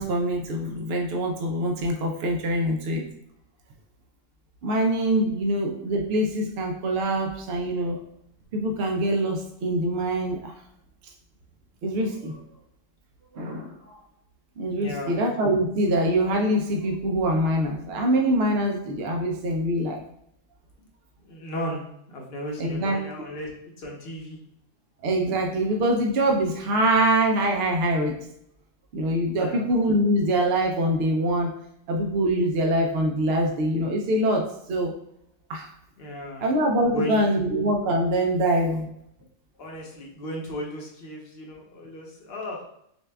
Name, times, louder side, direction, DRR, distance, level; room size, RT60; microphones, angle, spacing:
voice 1, 0.0-3.0 4.6-8.0 8.5-10.5 11.8-12.4 13.3-14.0 14.6-20.0 22.6-23.0 25.0-28.2 28.9-31.5 31.9-34.9 35.5-35.7 36.4-38.9, right 1 dB, 60° right, 2 dB, 0.7 m, -24 dB
voice 2, 14.7-15.1 21.2-21.8 22.1-23.5 23.8-24.4 29.4-29.6 36.0-36.4 36.9-37.2 39.6-42.6, equal, 55° left, -1 dB, 1.0 m, -35 dB
6.6 x 2.3 x 2.2 m, 0.75 s
omnidirectional pair, 1.3 m